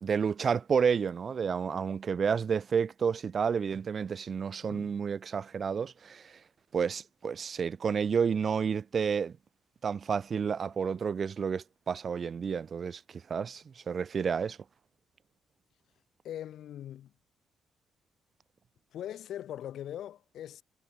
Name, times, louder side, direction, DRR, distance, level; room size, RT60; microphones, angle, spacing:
voice 1, 0.0-6.3 6.7-9.3 9.8-13.0 13.3-14.6, right 6 dB, 45° right, 1.2 m, -30 dB
voice 2, 4.6-4.9 16.2-17.1 18.9-20.6, left 11 dB, 75° left, 5.6 m, -41 dB
cardioid pair, 90°, 0 cm